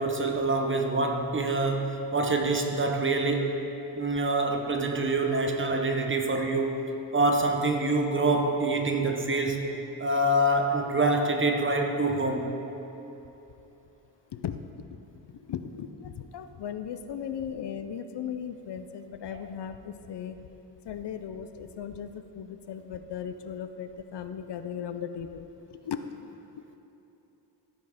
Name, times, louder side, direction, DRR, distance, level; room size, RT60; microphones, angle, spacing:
voice 1, 0.0-3.6 3.9-6.8 7.1-9.7 10.0-12.5 19.3-19.4, right 2 dB, 30° right, 3 dB, 0.9 m, -26 dB
voice 2, 14.3-14.9 15.3-20.4 20.8-26.0 26.5-26.6, left 8 dB, 70° left, 9 dB, 0.6 m, -37 dB
15.0 x 5.9 x 5.0 m, 3.0 s
wide cardioid pair, 145°, 42 cm